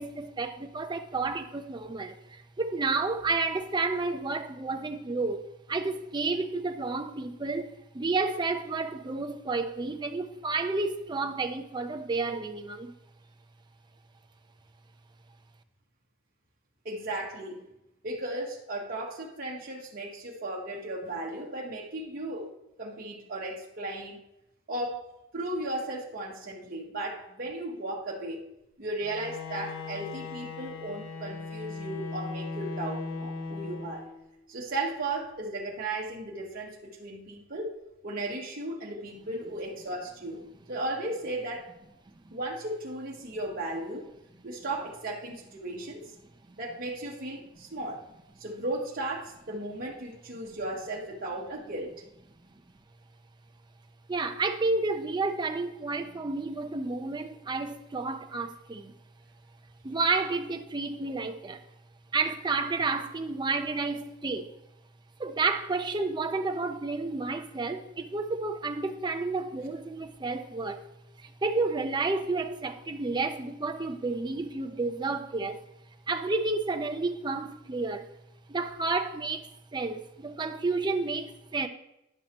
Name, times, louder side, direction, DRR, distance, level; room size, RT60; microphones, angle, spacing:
voice 1, 0.0-5.4 5.7-12.9 42.2-42.3 54.1-58.9 59.8-61.6 62.1-64.5 65.2-70.8 71.2-75.6 76.1-78.1 78.5-81.7, right 3 dB, 20° right, 0.5 m, -31 dB
voice 2, 16.8-17.6 18.0-22.5 22.8-24.2 24.7-28.4 28.8-34.0 34.5-37.8 38.0-40.4 40.7-41.7 42.3-44.1 44.4-46.1 46.6-48.0 48.4-51.9, right 2 dB, 50° right, 1.0 m, -35 dB
Bowed string instrument, 29.0-34.4, left 4 dB, 85° left, 0.7 m, -38 dB
9.9 x 6.3 x 2.9 m
head